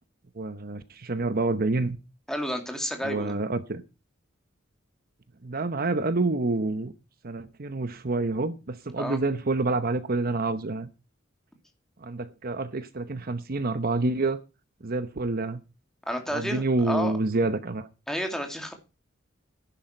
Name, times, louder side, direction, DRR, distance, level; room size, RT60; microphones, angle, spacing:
voice 1, 0.4-2.0 3.0-3.8 5.4-6.9 7.2-10.9 12.0-14.4 14.8-15.6 16.3-17.9, right 3 dB, 50° right, 0.9 m, -28 dB
voice 2, 2.3-3.3 9.0-9.2 16.1-17.1 18.1-18.7, equal, 5° left, 2.5 m, -31 dB
13.5 x 11.0 x 4.4 m
head